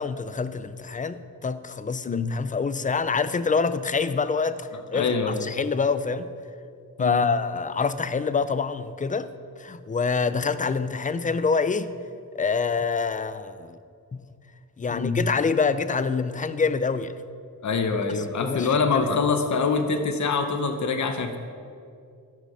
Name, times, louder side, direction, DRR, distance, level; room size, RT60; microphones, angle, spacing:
voice 1, 0.0-6.3 7.0-9.3 9.6-11.9 12.3-13.8 14.1-14.2 14.8-17.1 18.2-18.7, left 5 dB, 25° left, 14 dB, 0.3 m, -26 dB
voice 2, 4.7-5.6 7.0-7.3 14.9-15.2 17.6-21.4, left 4 dB, 55° left, 7 dB, 0.8 m, -25 dB
10.5 x 6.4 x 5.4 m, 2.4 s
wide cardioid pair, 100°, 35 cm